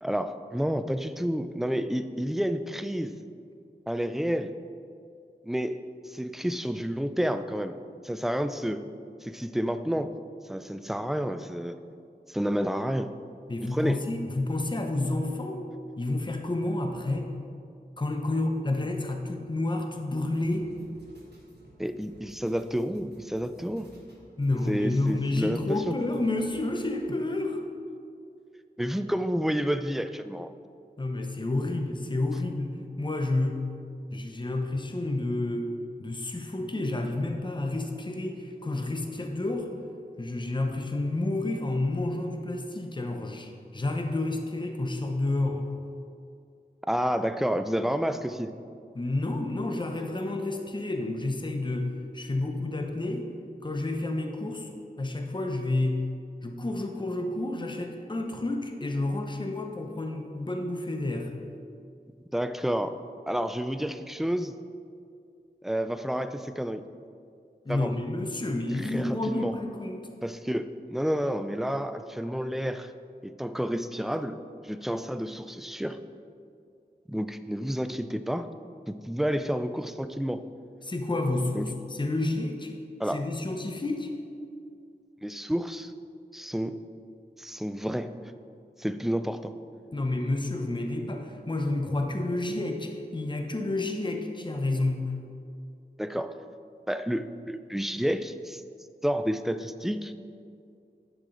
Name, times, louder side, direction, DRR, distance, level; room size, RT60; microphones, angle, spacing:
voice 1, 0.0-3.2 3.9-4.5 5.4-5.8 6.1-8.8 9.2-10.1 10.5-11.8 12.3-13.1 13.6-14.0 21.8-23.9 24.7-25.9 28.8-30.5 46.9-48.5 62.3-63.0 63.3-64.6 65.6-66.8 67.7-67.9 68.7-69.5 70.2-72.9 73.2-74.4 74.6-76.0 77.1-78.5 78.9-80.4 81.5-81.7 83.0-83.2 85.2-85.9 86.3-86.8 87.4-88.1 88.8-89.5 96.0-96.3 96.9-98.6 99.0-100.1, equal, ahead, 10 dB, 0.3 m, -30 dB
voice 2, 13.5-15.7 16.0-17.3 18.0-20.7 24.4-27.6 31.0-32.7 33.0-33.6 34.1-35.7 36.0-39.7 40.2-45.6 48.9-53.3 53.6-54.7 55.0-56.0 56.4-61.3 67.7-70.1 80.8-82.7 83.1-84.1 89.9-95.0, left 2 dB, 30° left, 4 dB, 0.7 m, -30 dB
sound 1, 20.3-27.0, right 1 dB, 85° right, 1.5 m, -54 dB
10.5 x 4.9 x 3.8 m, 2.4 s
wide cardioid pair, 65°, 17 cm